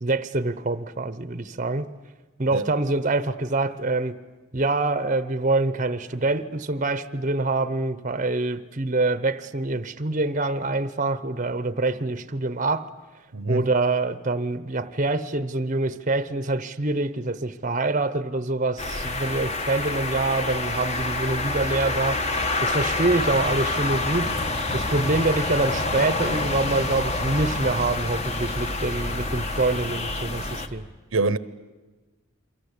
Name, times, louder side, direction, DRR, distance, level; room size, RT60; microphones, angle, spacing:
voice 1, 0.0-1.9 2.4-4.2 4.5-12.9 13.5-22.2 22.6-24.3 24.7-30.8, right 2 dB, 35° right, 0.9 m, -25 dB
voice 2, 13.3-13.7 31.1-31.4, right 3 dB, 65° right, 0.9 m, -24 dB
sound 1, 18.8-30.7, left 2 dB, 30° left, 1.4 m, -27 dB
29.0 x 23.5 x 8.3 m
head